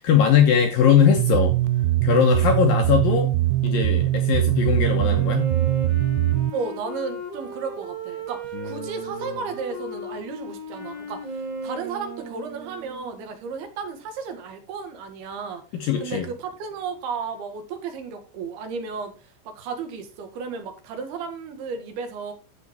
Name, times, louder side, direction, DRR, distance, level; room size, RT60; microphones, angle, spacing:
voice 1, 0.0-1.5 2.0-3.3 3.6-5.5 8.5-9.4 15.7-16.3, left 8 dB, 80° left, 3 dB, 2.0 m, -20 dB
sound 1, 1.2-6.5, right 16 dB, 85° right, 2.6 m, -22 dB
Wind instrument woodwind instrument, 4.7-13.3, right 2 dB, 30° right, 0.7 m, -36 dB
voice 2, 6.5-15.6 16.0-22.3, right 5 dB, 65° right, 6 dB, 3.1 m, -34 dB
14.0 x 4.9 x 4.3 m, 0.33 s
omnidirectional pair, 5.6 m